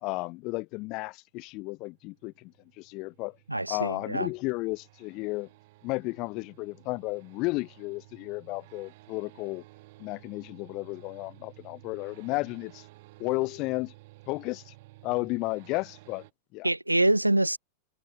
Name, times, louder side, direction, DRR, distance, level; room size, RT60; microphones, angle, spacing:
voice 1, 0.0-3.4 3.7-5.5 5.8-9.6 10.0-12.8 13.2-13.9 14.3-14.7 15.0-16.2 16.5-16.7, left 24 dB, 40° left, 0.5 m, -33 dB
sound 1, 1.5-16.3, right 20 dB, 50° right, 1.8 m, -54 dB
voice 2, 3.5-4.3 16.6-17.6, right 1 dB, 85° right, 0.4 m, -25 dB
figure-of-eight pair, 90°, 0 cm